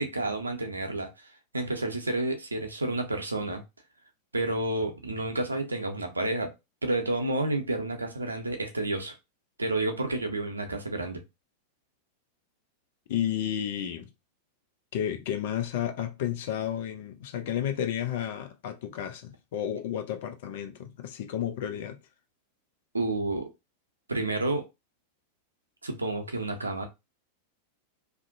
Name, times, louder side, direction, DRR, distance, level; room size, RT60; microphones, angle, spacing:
voice 1, 0.0-3.6 4.3-6.6 6.8-9.1 9.6-11.2 22.9-23.5 24.1-24.7 25.8-26.9, right 2 dB, 80° right, 0.5 m, -30 dB
voice 2, 13.1-14.1 14.9-22.0, left 10 dB, 55° left, 0.5 m, -32 dB
2.5 x 2.1 x 2.6 m
figure-of-eight pair, 90°, 0 cm